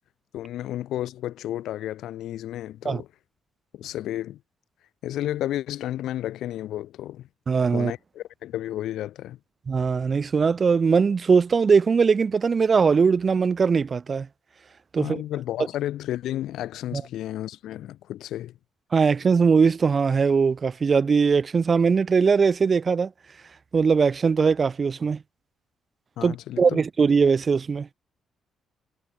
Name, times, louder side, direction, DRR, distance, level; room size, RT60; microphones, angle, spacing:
voice 1, 0.3-3.1 3.7-4.4 5.0-7.3 7.7-9.4 15.0-18.6 26.2-26.8, left 13 dB, 80° left, 1.9 m, -32 dB
voice 2, 7.5-7.9 9.7-14.3 14.9-15.2 16.9-17.0 18.9-23.1 23.7-25.2 26.2-27.9, right 5 dB, 40° right, 1.2 m, -20 dB
cardioid pair, 90°, 0 cm